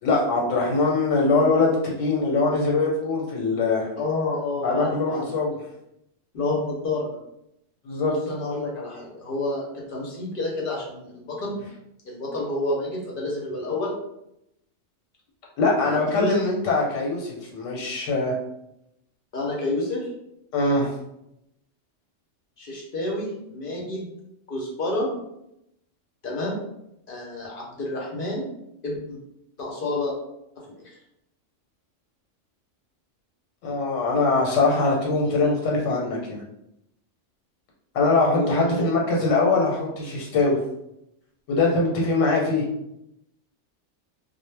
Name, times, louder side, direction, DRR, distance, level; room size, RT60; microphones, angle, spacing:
voice 1, 0.0-3.9 4.6-5.5 7.8-8.1 15.6-18.3 20.5-20.9 33.6-36.4 37.9-40.6 41.5-42.6, left 3 dB, 90° left, -3 dB, 1.0 m, -22 dB
voice 2, 4.0-5.3 6.3-7.2 8.0-11.6 12.0-13.9 15.8-16.3 19.3-20.1 22.6-24.1 24.5-25.1 26.2-26.6 27.1-28.5 28.8-29.2 29.6-30.1 30.7-30.9 35.3-35.5 38.3-38.7, left 2 dB, 55° left, -3 dB, 0.7 m, -29 dB
2.1 x 2.1 x 3.2 m, 0.83 s
omnidirectional pair, 1.3 m